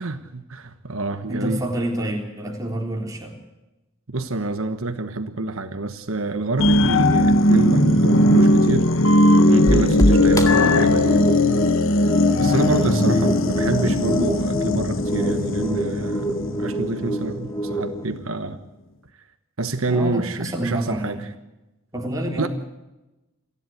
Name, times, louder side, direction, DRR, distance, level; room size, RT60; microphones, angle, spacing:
voice 1, 0.0-1.6 4.1-9.1 9.4-11.2 12.4-16.3 16.6-18.6 19.6-21.2 22.4-22.5, right 2 dB, 75° right, 8 dB, 1.3 m, -27 dB
voice 2, 1.3-3.4 12.8-13.3 19.9-21.3 21.9-22.5, right 1 dB, 15° right, 0 dB, 3.7 m, -28 dB
sound 1, 6.6-17.6 18.0-18.1, left 1 dB, 65° left, 1.3 m, -18 dB
sound 2, 9.7-18.1, equal, 15° left, 2.0 m, -25 dB
29.0 x 11.5 x 7.9 m, 1.0 s
head